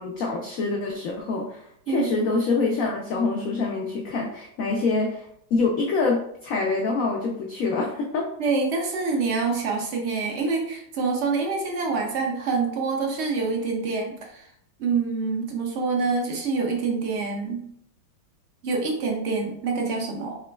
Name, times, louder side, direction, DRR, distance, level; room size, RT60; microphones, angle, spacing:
voice 1, 0.0-8.3, left 3 dB, 85° left, 0 dB, 0.7 m, -26 dB
voice 2, 8.4-14.5 14.8-17.7 18.6-20.4, right 4 dB, 80° right, 1 dB, 0.6 m, -26 dB
5.0 x 3.0 x 2.2 m, 0.71 s
omnidirectional pair, 2.0 m